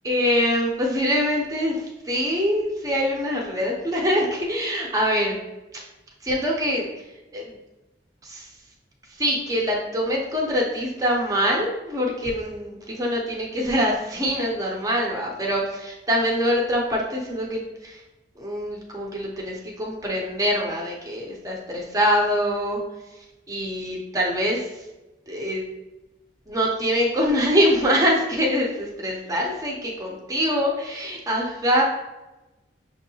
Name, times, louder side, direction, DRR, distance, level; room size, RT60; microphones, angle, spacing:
voice 1, 0.0-5.4 6.2-6.9 7.3-7.6 8.2-8.5 9.2-18.0 18.4-22.8 23.5-24.7 25.3-25.6 26.5-31.8, equal, 20° right, -2 dB, 0.5 m, -24 dB
5.8 x 2.7 x 2.7 m, 1.0 s
head